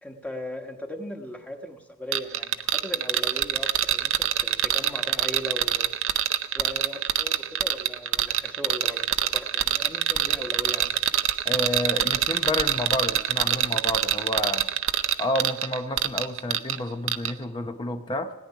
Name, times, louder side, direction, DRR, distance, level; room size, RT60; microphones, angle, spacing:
voice 1, 0.0-6.3 6.5-11.0, left 1 dB, 5° left, 3 dB, 1.3 m, -38 dB
sound 1, 2.1-16.8 17.1-17.3, right 11 dB, 65° right, 0.6 m, -25 dB
voice 2, 11.4-14.7 15.2-18.3, left 1 dB, 20° left, 7 dB, 0.7 m, -30 dB
17.5 x 10.0 x 5.9 m, 1.1 s
head